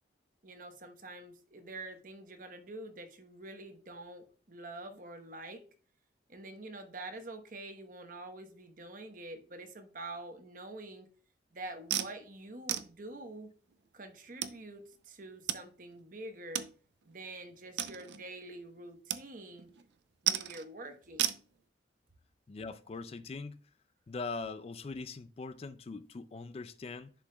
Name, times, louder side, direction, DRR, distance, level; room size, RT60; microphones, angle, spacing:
voice 1, 0.4-5.6 6.3-11.1 11.5-13.5 13.9-16.7 17.0-19.7 20.2-21.4, right 2 dB, 50° right, 1.0 m, -46 dB
sound 1, 11.9-12.1 12.7-12.9 13.7-13.8 14.4-14.6 15.5-15.6 15.9-16.0 16.6-16.7 17.1-17.2 17.8-18.3 19.1-19.2 19.5-19.8 20.3-20.6 21.2-21.4, right 11 dB, 70° right, 0.5 m, -33 dB
voice 2, 22.5-23.6 24.1-27.1, left 4 dB, 35° left, 0.3 m, -41 dB
10.5 x 4.9 x 2.2 m
head